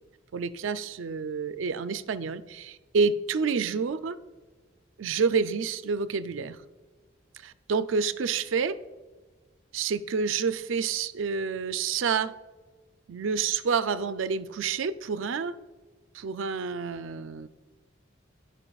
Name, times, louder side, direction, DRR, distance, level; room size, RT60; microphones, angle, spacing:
voice 1, 0.3-4.2 5.0-6.6 7.4-8.7 9.7-12.3 13.1-15.5 16.1-17.5, right 5 dB, 80° right, 13 dB, 0.4 m, -28 dB
15.0 x 5.3 x 2.3 m, 1.3 s
head